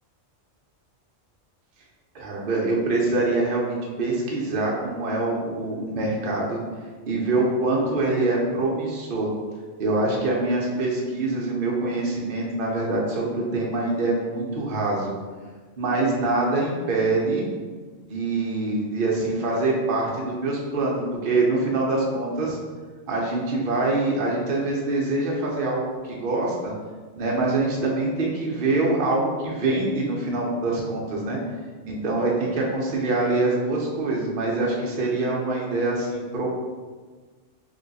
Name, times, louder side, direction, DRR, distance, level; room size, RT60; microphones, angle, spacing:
voice 1, 2.1-6.6 7.1-9.3 9.8-15.1 15.8-17.4 18.0-22.6 23.1-26.7 27.1-31.4 31.8-36.5, right 2 dB, 50° right, -3 dB, 0.9 m, -24 dB
3.2 x 2.9 x 4.0 m, 1.4 s
omnidirectional pair, 1.3 m